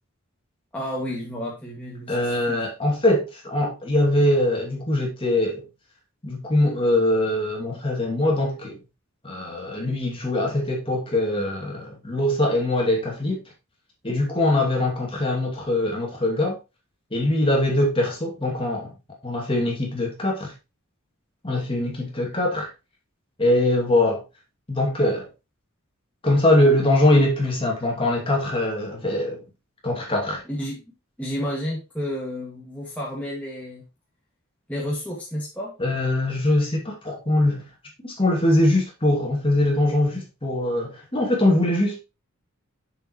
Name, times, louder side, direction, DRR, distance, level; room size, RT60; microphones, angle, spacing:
voice 1, 0.7-2.6 30.5-30.8 31.2-33.8 34.7-35.7, equal, 5° left, 2.0 m, -31 dB
voice 2, 2.1-5.6 6.2-8.8 9.2-13.4 14.0-16.6 17.1-18.9 19.2-20.5 21.4-22.7 23.4-24.2 24.7-25.3 26.2-29.4 29.8-30.4 35.8-37.6 38.0-42.0, left 1 dB, 25° left, 2.6 m, -22 dB
7.5 x 6.7 x 3.1 m
head